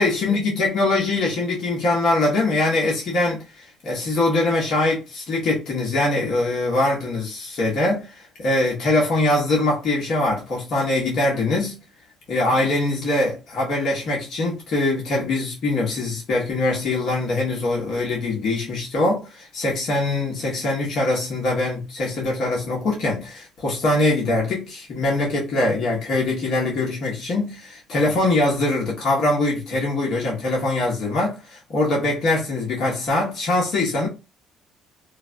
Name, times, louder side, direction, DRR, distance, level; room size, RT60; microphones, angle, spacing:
voice 1, 0.0-3.4 3.8-11.8 12.3-34.1, left 2 dB, 60° left, 1.4 m, -22 dB
3.1 x 2.3 x 2.6 m
supercardioid pair, 60°, 0 cm